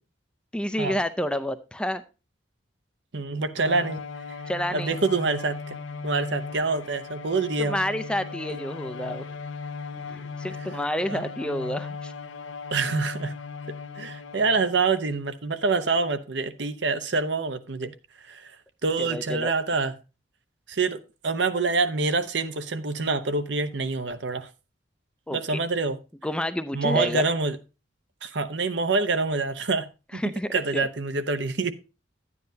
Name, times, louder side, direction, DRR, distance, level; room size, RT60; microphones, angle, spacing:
voice 1, 0.5-2.0 4.5-4.9 7.6-9.2 10.4-12.1 19.0-19.5 25.3-25.4 26.2-27.2 30.1-30.9, equal, 5° left, 10 dB, 0.5 m, -29 dB
voice 2, 3.1-4.0 4.7-5.8 6.0-7.8 8.5-8.6 11.1-11.2 12.7-13.4 14.0-17.9 18.2-18.6 18.8-19.9 20.7-24.5 25.3-26.0 26.7-27.6 28.2-30.2 30.5-31.7, right 3 dB, 70° right, 10 dB, 0.8 m, -26 dB
Bowed string instrument, 3.6-14.8, left 5 dB, 90° left, 0.8 m, -38 dB
10.5 x 9.7 x 2.7 m, 0.30 s
head